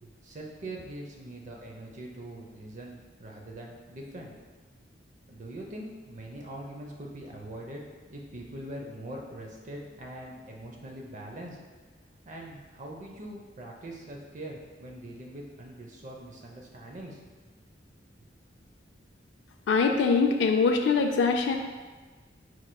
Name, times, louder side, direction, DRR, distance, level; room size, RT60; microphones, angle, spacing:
voice 1, 0.0-4.3 5.3-7.8 8.1-11.6 12.2-17.2, right 1 dB, 45° right, 0 dB, 0.6 m, -42 dB
voice 2, 19.7-21.6, left 4 dB, 75° left, 4 dB, 0.3 m, -23 dB
4.7 x 4.3 x 2.2 m, 1.3 s
head